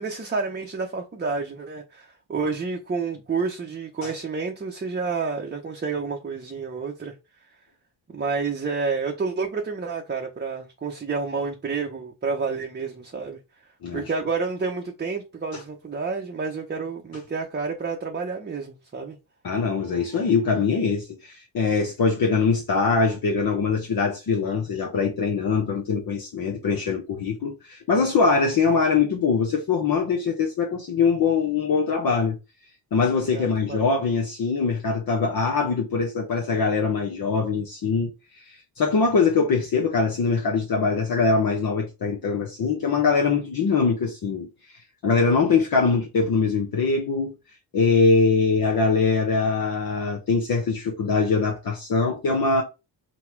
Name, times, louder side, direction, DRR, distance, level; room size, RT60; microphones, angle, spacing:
voice 1, 0.0-7.1 8.1-13.4 13.9-19.2 33.3-33.8, right 4 dB, 25° right, 0.8 m, -29 dB
voice 2, 19.4-32.4 32.9-44.5 45.0-47.3 47.7-52.6, left 4 dB, 50° left, 1.0 m, -22 dB
4.0 x 2.3 x 4.5 m
cardioid pair, 70°, 45 cm